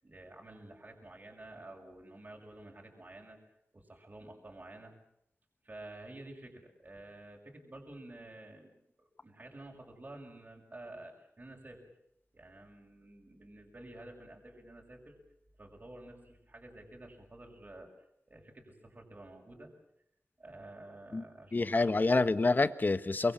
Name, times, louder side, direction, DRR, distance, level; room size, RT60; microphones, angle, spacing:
voice 1, 0.0-3.4 3.7-4.9 5.6-11.9 12.3-15.1 15.6-17.9 18.3-19.7 20.4-22.1, right 1 dB, 40° right, 1 dB, 6.4 m, -51 dB
voice 2, 21.5-23.3, left 3 dB, 40° left, 12 dB, 1.3 m, -27 dB
25.0 x 22.5 x 7.5 m, 0.77 s
wide cardioid pair, 70°, 5 cm